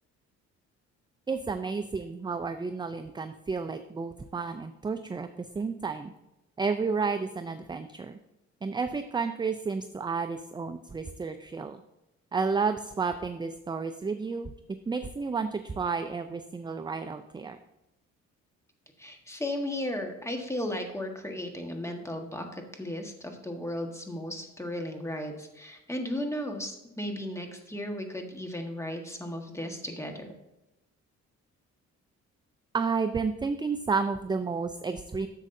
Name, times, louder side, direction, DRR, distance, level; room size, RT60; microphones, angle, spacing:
voice 1, 1.3-6.1 6.6-8.2 8.6-11.8 12.3-14.5 14.9-17.6 32.7-35.3, right 5 dB, 15° right, 9 dB, 0.4 m, -31 dB
voice 2, 19.0-30.3, left 1 dB, 10° left, 3 dB, 1.4 m, -35 dB
10.5 x 7.3 x 2.7 m, 0.94 s
cardioid pair, 90°, 30 cm